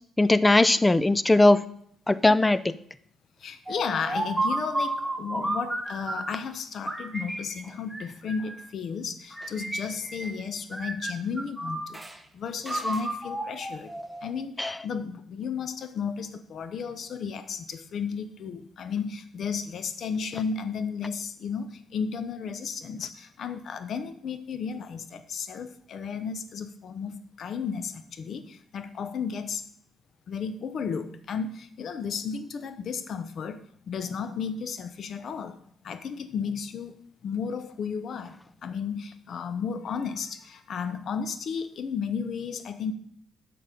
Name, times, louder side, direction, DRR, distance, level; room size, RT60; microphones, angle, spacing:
voice 1, 0.2-1.6 2.1-2.6 14.6-14.7, left 2 dB, 15° left, 16 dB, 0.4 m, -19 dB
voice 2, 3.4-12.0 12.3-13.9 14.2-29.6 30.3-35.6 35.8-36.9 37.2-42.9, left 6 dB, 60° left, 10 dB, 0.8 m, -33 dB
sound 1, 3.7-6.4 6.9-8.7 9.3-10.4 10.7-12.2 12.6-14.4, right 2 dB, 10° right, 1.1 m, -32 dB
10.5 x 6.7 x 3.8 m, 0.65 s
cardioid pair, 90°, 0 cm